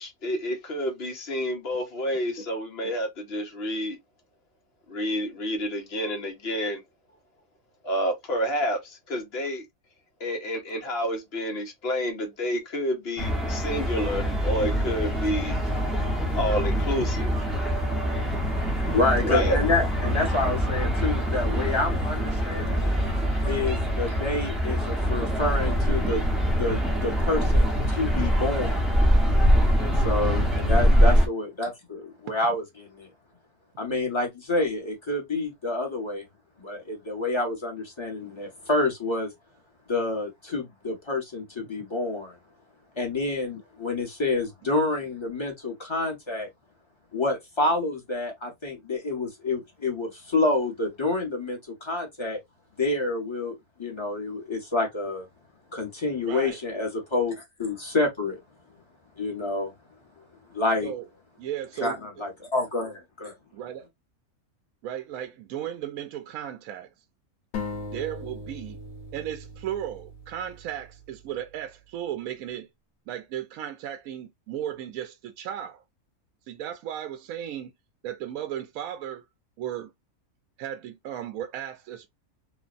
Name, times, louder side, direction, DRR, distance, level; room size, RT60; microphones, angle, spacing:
voice 1, 0.0-4.0 4.9-6.8 7.8-9.6 10.2-15.6 16.3-17.3 19.2-19.6, equal, 50° left, 1.0 m, -29 dB
sound 1, 13.2-31.3, equal, ahead, 0.7 m, -24 dB
voice 2, 18.8-22.9 23.5-26.2 26.6-28.8 29.7-33.1 33.8-36.3 36.6-39.3 39.9-42.4 42.9-46.5 47.1-52.4 52.8-55.3 55.7-58.4 59.2-59.7 60.5-60.9 61.8-63.4, left 2 dB, 20° left, 1.1 m, -28 dB
voice 3, 56.2-56.6 60.8-61.1 61.4-62.0 63.5-63.9 64.8-66.9 67.9-68.8 69.1-72.7 73.1-75.8 76.5-77.7 78.0-79.3 79.6-79.9 80.6-82.1, right 11 dB, 75° right, 1.0 m, -35 dB
sound 2, 67.5-71.2, left 3 dB, 80° left, 1.2 m, -38 dB
3.1 x 2.1 x 2.3 m
omnidirectional pair, 1.5 m